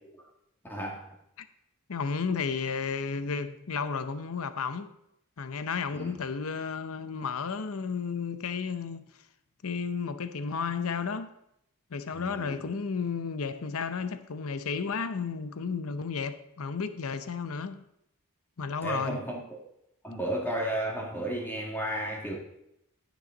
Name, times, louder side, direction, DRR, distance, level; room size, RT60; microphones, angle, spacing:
voice 1, 0.7-1.1 5.9-6.1 12.1-12.6 18.8-19.4 20.0-22.3, right 1 dB, 10° left, 2.0 m, -33 dB
voice 2, 1.9-4.9 5.4-9.1 9.6-11.3 11.9-17.8 18.6-19.2, left 5 dB, 70° left, 0.7 m, -33 dB
15.0 x 6.2 x 3.9 m
head